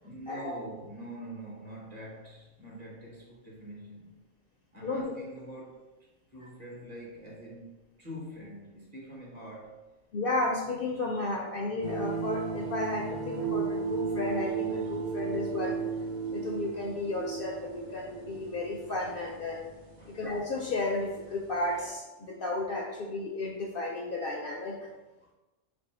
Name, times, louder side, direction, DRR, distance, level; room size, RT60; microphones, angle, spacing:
voice 1, 0.0-4.2 4.7-5.9 6.3-9.9 20.0-20.2, right 1 dB, 40° right, -3 dB, 0.9 m, -45 dB
voice 2, 10.1-15.9 16.3-19.7 20.1-24.8, left 2 dB, 60° left, -1 dB, 0.6 m, -33 dB
sound 1, 11.8-21.9, right 5 dB, 90° right, 1.0 m, -35 dB
3.1 x 2.6 x 4.2 m, 1.1 s
omnidirectional pair, 1.3 m